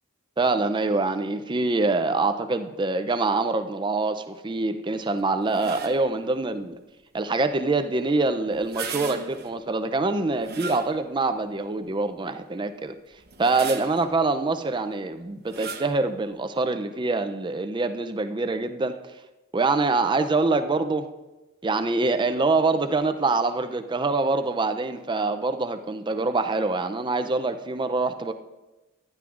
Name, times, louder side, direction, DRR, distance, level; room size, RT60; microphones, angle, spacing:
voice 1, 0.4-6.8 7.1-12.9 13.4-19.0 19.5-21.1 21.6-28.3, right 3 dB, 20° right, 9 dB, 0.4 m, -25 dB
sound 1, 5.5-6.2 8.5-9.6 10.4-11.3 11.9-12.0 13.2-14.2 15.5-16.0, right 6 dB, 50° right, 0.8 m, -37 dB
15.0 x 11.0 x 2.5 m, 1.1 s
head